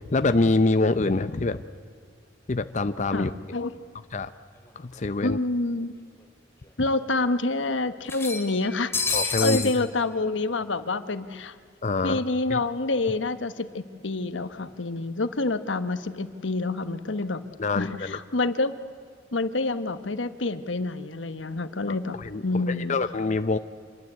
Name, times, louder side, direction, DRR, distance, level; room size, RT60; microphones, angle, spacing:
voice 1, 0.0-1.6 2.5-3.3 4.1-4.3 4.8-5.4 9.1-9.7 11.8-12.2 12.5-12.6 17.6-18.2 22.2-23.6, left 3 dB, 40° left, 11 dB, 0.6 m, -25 dB
sound 1, 4.7-4.8 5.1-5.2 6.2-6.3 6.7-6.8 8.1-9.8, left 4 dB, 15° left, 2.5 m, -29 dB
voice 2, 5.2-6.0 6.8-8.9 9.2-11.6 12.0-17.4 17.7-18.7 19.3-22.2 22.4-23.0, left 2 dB, 85° left, 11 dB, 1.3 m, -27 dB
27.0 x 22.0 x 8.2 m, 2.1 s
head